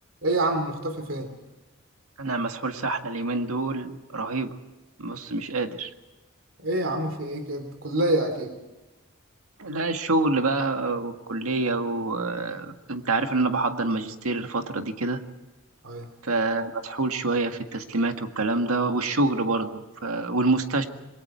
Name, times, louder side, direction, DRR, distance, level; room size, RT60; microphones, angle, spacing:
voice 1, 0.2-1.3 6.6-8.5 15.8-16.1, right 1 dB, 65° right, 7 dB, 3.1 m, -27 dB
voice 2, 2.2-4.5 5.0-5.9 9.6-15.2 16.2-20.8, right 2 dB, 90° right, 6 dB, 1.9 m, -26 dB
27.0 x 22.0 x 4.5 m, 1.1 s
head